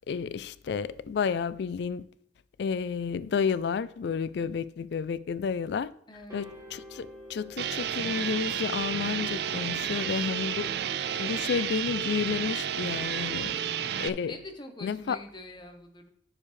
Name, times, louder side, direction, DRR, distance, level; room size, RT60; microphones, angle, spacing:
voice 1, 0.1-2.0 2.6-5.9 6.3-10.7 11.2-13.6 14.0-14.4 14.8-15.2, left 6 dB, 65° left, 0.4 m, -31 dB
voice 2, 6.1-6.5 13.2-13.6 14.3-16.1, left 1 dB, 25° left, 1.0 m, -45 dB
sound 1, 6.3-14.0, right 1 dB, 20° right, 2.7 m, -46 dB
sound 2, 7.6-14.1, right 9 dB, 65° right, 0.4 m, -31 dB
9.8 x 6.7 x 3.2 m
head